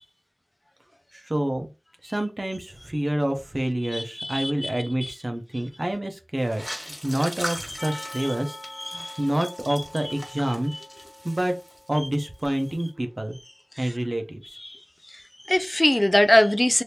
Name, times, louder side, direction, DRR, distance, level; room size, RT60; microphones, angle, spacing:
voice 1, 1.1-1.7 2.0-8.6 8.9-10.7 11.2-11.6 11.9-13.4 13.8-14.6, right 1 dB, 45° right, 0.7 m, -28 dB
voice 2, 3.9-4.7 8.8-9.2 14.7-14.8 15.1-16.8, left 1 dB, 30° left, 0.3 m, -22 dB
sound 1, 6.4-12.1 12.4-12.8, equal, 10° left, 1.3 m, -39 dB
Percussion, 7.8-12.3, left 1 dB, 80° left, 0.8 m, -44 dB
2.9 x 2.6 x 3.3 m
wide cardioid pair, 45°, 0 cm